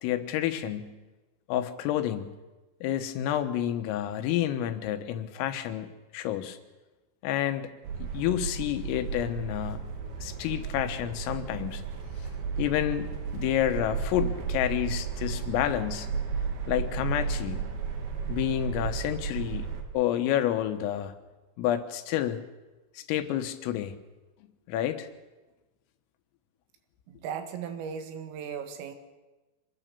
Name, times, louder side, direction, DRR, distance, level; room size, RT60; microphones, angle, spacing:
voice 1, 0.0-1.0 1.5-2.4 2.8-6.6 7.2-7.7 8.0-9.9 10.2-11.8 12.6-16.1 16.7-17.7 18.3-21.2 21.6-22.4 23.0-24.0 24.7-25.1, left 11 dB, 90° left, 9 dB, 3.9 m, -29 dB
sound 1, 7.8-19.8, right 5 dB, 55° right, 3.5 m, -34 dB
voice 2, 27.1-29.0, right 7 dB, 85° right, 7 dB, 4.5 m, -37 dB
25.5 x 20.5 x 6.9 m, 1.2 s
omnidirectional pair, 5.8 m